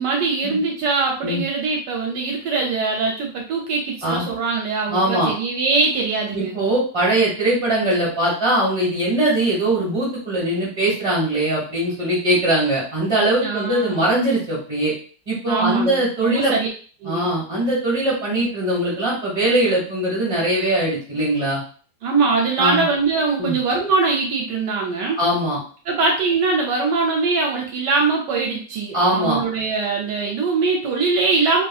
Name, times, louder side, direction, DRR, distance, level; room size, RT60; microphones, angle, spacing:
voice 1, 0.0-6.6 13.4-14.1 15.5-16.7 17.0-17.3 22.0-25.2 25.9-31.6, right 4 dB, 80° right, 0 dB, 1.2 m, -22 dB
voice 2, 4.9-5.3 6.3-14.9 15.3-16.5 17.0-21.6 22.6-22.8 23.4-23.6 25.2-25.6 28.9-29.4, right 1 dB, 20° right, -6 dB, 1.5 m, -21 dB
2.9 x 2.6 x 2.3 m, 0.42 s
omnidirectional pair, 1.9 m